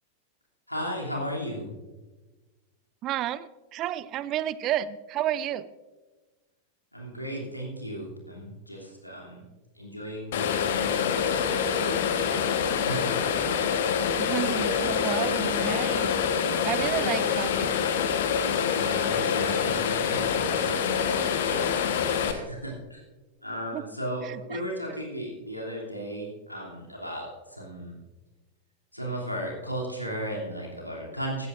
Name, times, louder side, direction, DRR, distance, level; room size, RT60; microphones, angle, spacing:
voice 1, 0.7-1.7 6.9-9.4 9.7-13.1 18.7-23.0 23.4-28.0 28.9-31.5, equal, 90° left, -2 dB, 3.0 m, -36 dB
voice 2, 3.0-5.7 14.2-16.1 16.6-17.8 23.7-23.8 24.5-24.6, right 12 dB, 35° right, 17 dB, 0.5 m, -31 dB
sound 1, 10.3-22.3, left 7 dB, 55° left, 1.2 m, -26 dB
16.0 x 14.5 x 2.6 m, 1.2 s
figure-of-eight pair, 90°, 0 cm